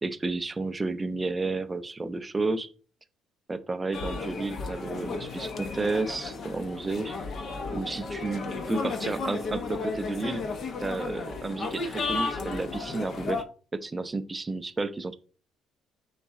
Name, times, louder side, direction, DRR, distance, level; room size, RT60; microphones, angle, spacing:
voice 1, 0.0-2.7 3.5-7.2 7.7-10.4 10.8-13.4 13.7-15.1, right 3 dB, 15° right, 10 dB, 0.3 m, -31 dB
sound 1, 3.9-13.4, left 4 dB, 35° left, 0.6 m, -34 dB
3.9 x 3.2 x 3.5 m, 0.39 s
cardioid pair, 165°, 0 cm